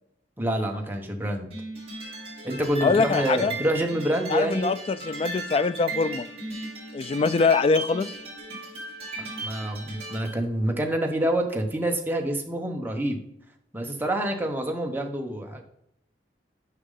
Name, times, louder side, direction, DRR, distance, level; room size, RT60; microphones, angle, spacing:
voice 1, 0.4-1.5 2.4-4.7 9.2-13.2 13.7-15.7, right 1 dB, 10° right, 2 dB, 0.9 m, -27 dB
sound 1, 1.5-10.4, right 2 dB, 35° right, 2.8 m, -37 dB
voice 2, 2.8-3.5 4.3-6.3 6.9-8.2, left 4 dB, 30° left, 14 dB, 0.3 m, -23 dB
6.6 x 5.2 x 3.8 m, 0.76 s
head